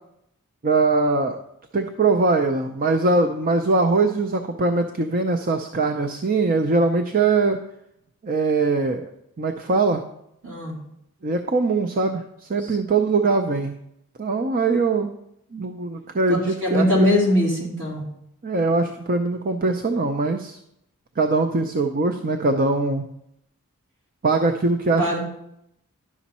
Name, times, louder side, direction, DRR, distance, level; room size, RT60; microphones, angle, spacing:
voice 1, 0.6-1.4 1.7-7.6 8.2-9.1 9.4-10.0 11.2-13.7 14.2-15.1 15.5-17.2 18.4-20.6 21.2-23.0 24.2-25.2, right 3 dB, 40° right, 6 dB, 0.5 m, -22 dB
voice 2, 10.4-10.8 12.6-12.7 16.6-18.0 25.0-25.2, left 1 dB, 60° right, -4 dB, 3.2 m, -21 dB
11.0 x 6.1 x 4.2 m, 0.77 s
head